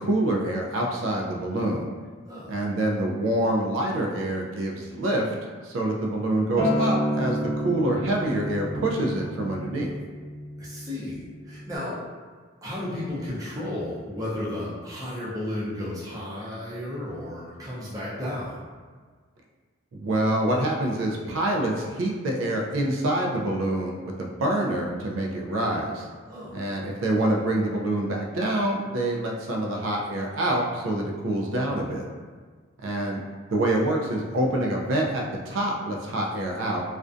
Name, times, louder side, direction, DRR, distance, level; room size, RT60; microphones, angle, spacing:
voice 1, 0.0-1.9 2.5-5.3 5.6-9.9 19.9-26.1 26.5-32.0 32.8-33.2 33.5-36.8, right 1 dB, 80° right, 0 dB, 0.4 m, -26 dB
Acoustic guitar, 6.6-11.8, equal, 45° right, 0.8 m, -30 dB
voice 2, 10.6-12.0 12.6-18.6 26.3-26.5, left 1 dB, 15° right, -8 dB, 0.5 m, -33 dB
2.4 x 2.1 x 2.4 m, 1.5 s
head